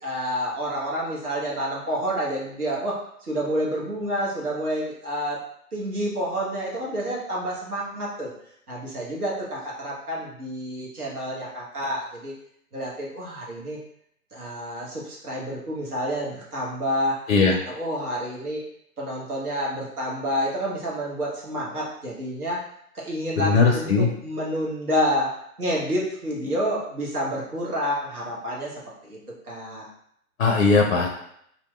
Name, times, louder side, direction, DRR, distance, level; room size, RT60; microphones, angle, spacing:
voice 1, 0.0-5.4 5.7-8.3 8.7-12.3 12.7-13.8 14.3-18.7 19.0-22.6 22.9-23.9 24.2-29.2 29.4-29.9, equal, 80° right, -4 dB, 1.1 m, -29 dB
voice 2, 17.3-17.6 23.4-24.1 30.4-31.1, left 4 dB, 50° left, 1 dB, 0.5 m, -19 dB
2.8 x 2.4 x 2.2 m, 0.70 s
figure-of-eight pair, 135°, 44 cm